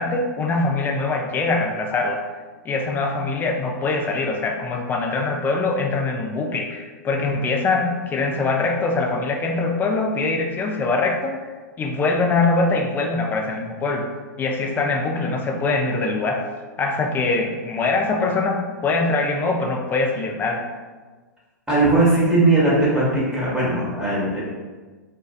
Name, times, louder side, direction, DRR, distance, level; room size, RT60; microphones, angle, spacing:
voice 1, 0.0-2.2 2.6-11.4 11.8-14.0 14.4-16.4 16.8-20.6, left 3 dB, 20° left, 2 dB, 0.3 m, -23 dB
voice 2, 21.7-24.4, right 2 dB, 5° right, -8 dB, 0.8 m, -19 dB
2.5 x 2.2 x 2.3 m, 1.3 s
hypercardioid pair, 115°, 10 cm